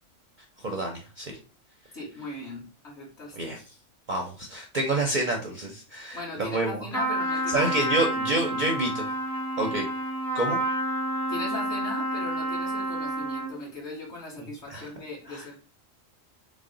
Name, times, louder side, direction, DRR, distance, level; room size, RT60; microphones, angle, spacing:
voice 1, 0.6-1.4 3.4-3.6 4.1-6.9 7.5-9.1 9.6-9.9 10.3-10.6 14.7-14.9 15.3-15.5, right 2 dB, 50° right, 2 dB, 0.6 m, -28 dB
voice 2, 1.9-3.5 6.1-8.5 11.3-15.6, left 2 dB, 55° left, -4 dB, 1.9 m, -39 dB
Trumpet, 6.9-13.6, right 1 dB, ahead, 0.7 m, -29 dB
4.1 x 2.1 x 3.7 m, 0.34 s
omnidirectional pair, 1.4 m